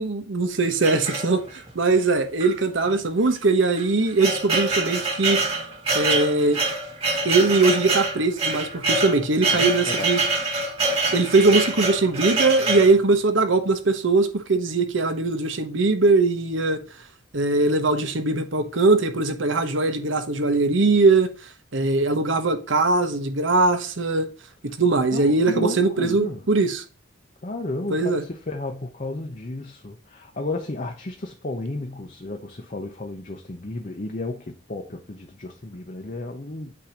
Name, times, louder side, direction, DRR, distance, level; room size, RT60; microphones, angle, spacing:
voice 1, 0.0-1.4 1.7-5.4 5.9-6.6 7.2-10.2 11.1-16.8 17.3-21.3 21.7-24.3 24.6-26.8 27.9-28.2, right 3 dB, 80° right, 1.1 m, -21 dB
sound 1, 0.8-1.7 2.4-2.5 2.8-2.9 3.6-12.9, right 3 dB, 30° right, 2.1 m, -25 dB
voice 2, 9.5-10.1 24.7-24.8 25.1-26.4 27.4-36.7, left 2 dB, 40° left, 0.8 m, -33 dB
8.5 x 2.9 x 5.0 m
head